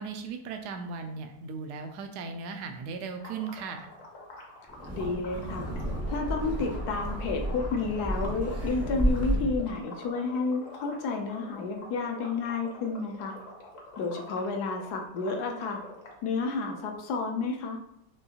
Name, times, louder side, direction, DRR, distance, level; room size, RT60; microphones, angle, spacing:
voice 1, 0.0-3.9, right 5 dB, 75° right, 6 dB, 1.1 m, -37 dB
sound 1, 3.2-9.2 9.5-16.1, left 2 dB, 55° left, 1.2 m, -46 dB
Wind, 4.7-9.7, right 1 dB, 20° right, 0.4 m, -31 dB
voice 2, 4.9-5.7 6.1-13.4 14.0-15.8 16.2-17.8, left 4 dB, 70° left, 3 dB, 1.2 m, -31 dB
5.3 x 3.1 x 2.8 m, 0.77 s
omnidirectional pair, 1.8 m